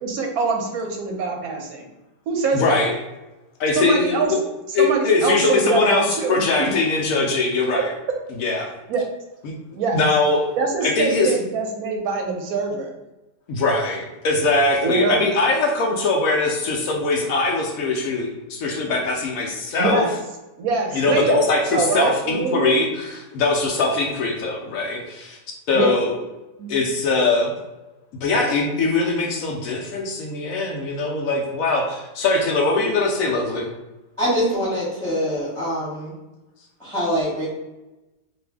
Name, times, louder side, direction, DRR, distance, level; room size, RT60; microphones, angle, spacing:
voice 1, 0.0-1.9 2.3-2.8 3.7-4.3 4.8-6.3 8.9-9.1 9.7-10.0 10.6-12.9 14.8-15.3 19.8-20.1 20.6-21.4 21.7-22.8 25.7-25.9 26.6-26.7, right 4 dB, 70° right, 2 dB, 1.0 m, -24 dB
voice 2, 2.5-2.9 3.6-4.4 4.7-7.9 8.4-8.7 9.4-9.5 9.9-10.5 10.8-11.3 13.5-20.1 20.9-25.4 25.7-26.2 26.7-27.5 28.2-33.7, left 3 dB, 70° left, 0 dB, 0.9 m, -21 dB
voice 3, 34.2-36.1 36.8-37.5, equal, 5° left, -10 dB, 1.1 m, -24 dB
2.6 x 2.5 x 3.3 m, 1.0 s
omnidirectional pair, 1.8 m